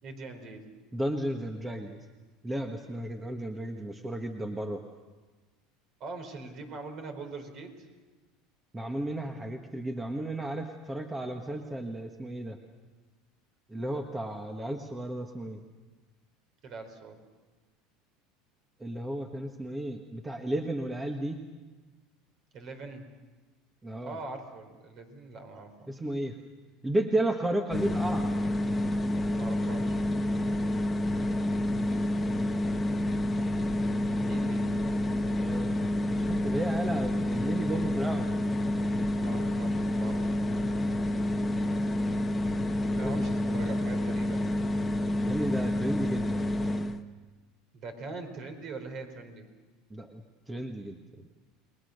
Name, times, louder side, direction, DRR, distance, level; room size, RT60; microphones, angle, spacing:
voice 1, 0.0-0.7 6.0-7.9 16.6-17.2 22.5-23.1 24.0-25.9 29.3-30.1 34.2-34.7 39.2-40.7 42.9-44.8 47.7-49.5, right 3 dB, 45° right, 6 dB, 4.5 m, -42 dB
voice 2, 0.9-2.0 2.4-4.8 8.7-12.6 13.7-15.6 18.8-21.4 23.8-24.2 25.9-26.4 26.8-28.3 35.4-38.3 42.9-43.6 45.3-46.5 49.9-51.3, right 1 dB, 10° right, 4 dB, 1.5 m, -33 dB
sound 1, 27.7-47.0, left 1 dB, 15° left, 1.2 m, -29 dB
30.0 x 21.0 x 6.7 m, 1.3 s
supercardioid pair, 120°, 0 cm